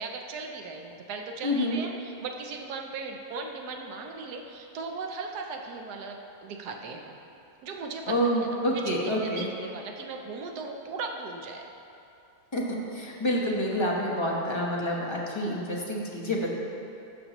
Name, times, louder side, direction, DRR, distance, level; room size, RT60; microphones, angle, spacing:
voice 1, 0.0-7.2 7.6-8.1 8.5-11.7, right 4 dB, 75° right, 3 dB, 1.2 m, -38 dB
voice 2, 1.4-1.8 8.1-9.5 12.5-16.5, equal, 25° left, -3 dB, 0.7 m, -28 dB
11.5 x 7.0 x 3.0 m, 2.8 s
omnidirectional pair, 1.8 m